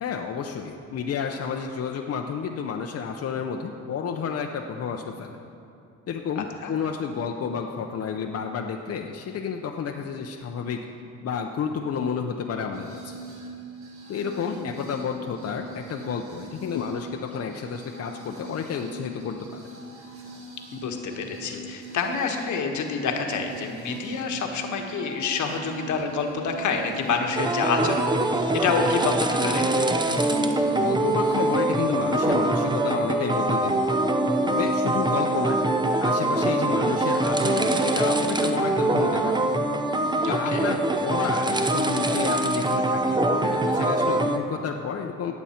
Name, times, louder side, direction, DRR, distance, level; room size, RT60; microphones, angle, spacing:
voice 1, 0.0-5.4 6.1-10.8 11.2-13.2 14.1-19.6 30.8-34.1 34.4-35.6 36.0-39.3 40.3-45.3, left 6 dB, 55° left, 2 dB, 0.7 m, -30 dB
voice 2, 6.3-6.7 14.5-14.7 20.7-29.7 40.2-40.7, left 5 dB, 75° left, 3 dB, 1.3 m, -28 dB
sound 1, 12.7-31.6, right 2 dB, 45° right, 1.9 m, -41 dB
sound 2, 27.4-44.4, right 2 dB, 15° right, 0.7 m, -24 dB
Wind instrument woodwind instrument, 29.1-37.5, right 1 dB, 85° right, 2.8 m, -38 dB
18.0 x 7.1 x 4.4 m, 2.6 s
cardioid pair, 90°, 30 cm